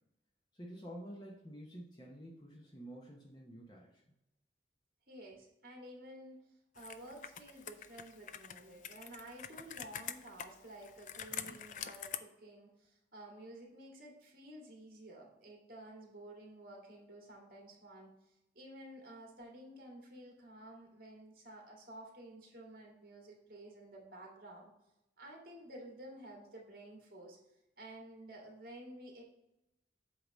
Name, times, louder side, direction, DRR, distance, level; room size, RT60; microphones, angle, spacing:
voice 1, 0.5-4.0 11.4-11.6, equal, 25° left, -3 dB, 0.9 m, -50 dB
voice 2, 5.1-6.4 6.7-18.1 18.5-24.7 25.2-27.4 27.8-29.2, right 1 dB, 50° right, -1 dB, 2.1 m, -52 dB
Computer keyboard, 6.8-12.2, left 9 dB, 45° left, 0.3 m, -46 dB
8.1 x 3.0 x 6.2 m, 0.89 s
head